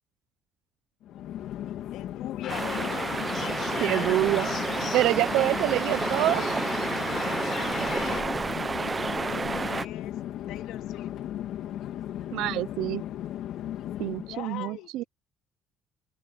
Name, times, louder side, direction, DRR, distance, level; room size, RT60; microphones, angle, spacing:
Chatter / Fixed-wing aircraft airplane, 1.0-14.4, left 12 dB, 60° left, 2.7 m, -36 dB
voice 1, 1.9-3.2 3.6-4.2 7.8-8.4 9.1-10.1 10.5-11.1 14.3-15.1, left 15 dB, 80° left, 3.2 m, -41 dB
sound 1, 2.4-8.2, left 9 dB, 45° left, 3.4 m, -38 dB
sound 2, 2.5-9.9, right 4 dB, 15° right, 0.5 m, -30 dB
voice 2, 3.8-4.5 4.9-6.5 12.3-13.0 14.0-15.0, right 16 dB, 80° right, 0.5 m, -26 dB
open air
cardioid pair, 175°, 0 cm